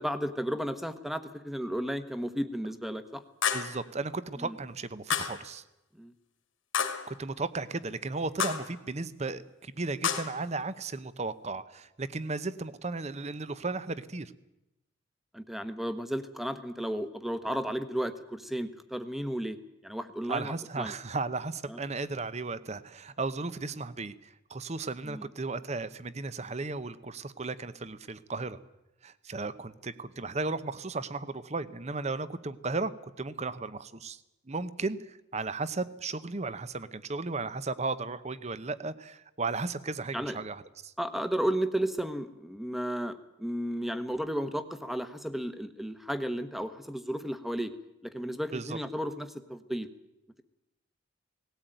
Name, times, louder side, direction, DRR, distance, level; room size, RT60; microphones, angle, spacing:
voice 1, 0.0-3.2 4.4-4.6 6.0-6.1 15.3-19.6 19.8-20.9 21.7-21.8 25.0-25.2 40.1-40.4 41.0-47.7 48.0-49.9, equal, ahead, 11 dB, 1.1 m, -33 dB
sound 1, 3.4-3.8 5.1-5.5 6.7-7.1 8.4-8.8 10.0-10.4, left 7 dB, 80° left, 2.2 m, -30 dB
voice 2, 3.5-5.6 7.1-14.3 20.3-28.6 29.0-34.2 34.5-40.9 48.5-48.8, right 3 dB, 35° right, 15 dB, 0.8 m, -35 dB
18.5 x 17.5 x 9.1 m, 0.92 s
head